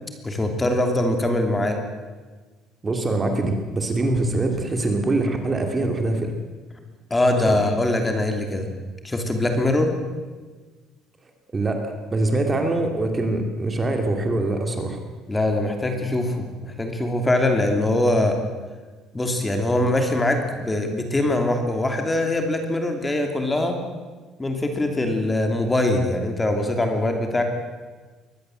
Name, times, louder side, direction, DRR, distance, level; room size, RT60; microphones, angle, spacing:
voice 1, 0.2-1.8 7.1-8.7 9.0-10.0 15.3-18.4 19.1-23.8 24.4-27.4, left 1 dB, 10° left, 4 dB, 2.8 m, -22 dB
voice 2, 2.8-6.3 7.4-7.6 11.5-15.0, right 2 dB, 20° right, 4 dB, 2.5 m, -24 dB
23.0 x 19.0 x 7.8 m, 1.4 s
cardioid pair, 160°, 0 cm